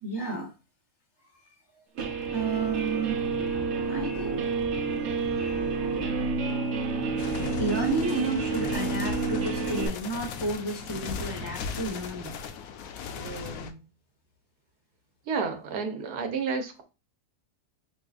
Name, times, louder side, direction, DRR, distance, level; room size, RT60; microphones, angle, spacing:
voice 1, 0.0-0.5 1.2-1.3 2.3-3.3 3.8-4.4 4.7-6.0 7.6-12.4, right 3 dB, 40° right, 0.3 m, -32 dB
Guitar, 2.0-9.9, right 4 dB, 60° right, 0.8 m, -29 dB
sound 1, 7.2-13.7, left 6 dB, 70° left, 0.9 m, -37 dB
voice 2, 13.2-13.8 15.3-16.8, right 5 dB, 85° right, 1.3 m, -32 dB
5.3 x 2.4 x 2.3 m
omnidirectional pair, 1.7 m